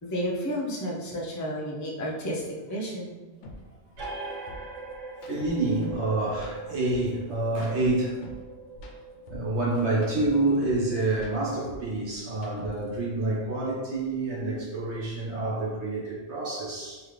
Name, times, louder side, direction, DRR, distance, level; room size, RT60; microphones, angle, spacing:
voice 1, 0.0-3.2, equal, 25° left, -3 dB, 0.4 m, -31 dB
sound 1, 3.4-3.6 3.9-4.1 4.5-6.1 6.3-8.5 8.7-10.9 11.1-13.0, left 1 dB, 80° left, 0.9 m, -45 dB
sound 2, 4.0-11.2, right 4 dB, 85° right, 1.0 m, -42 dB
voice 2, 5.3-8.2 9.3-17.0, right 2 dB, 70° right, -5 dB, 1.4 m, -28 dB
3.7 x 2.9 x 3.2 m, 1.3 s
omnidirectional pair, 1.2 m